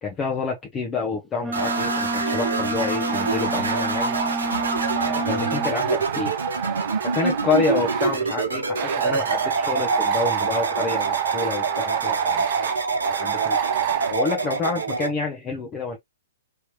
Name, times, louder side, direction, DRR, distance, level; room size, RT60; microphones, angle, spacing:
voice 1, 0.0-4.2 5.0-6.3 7.1-12.4 13.1-13.7 14.1-16.0, left 4 dB, 20° left, 1.0 m, -28 dB
Wind instrument woodwind instrument, 1.4-5.8, right 1 dB, 5° right, 0.5 m, -30 dB
sound 1, 1.5-15.1, right 4 dB, 80° right, 1.0 m, -26 dB
sound 2, 3.1-8.2 8.8-14.1, right 11 dB, 45° right, 0.7 m, -29 dB
3.3 x 3.1 x 2.9 m
hypercardioid pair, 120°, 0 cm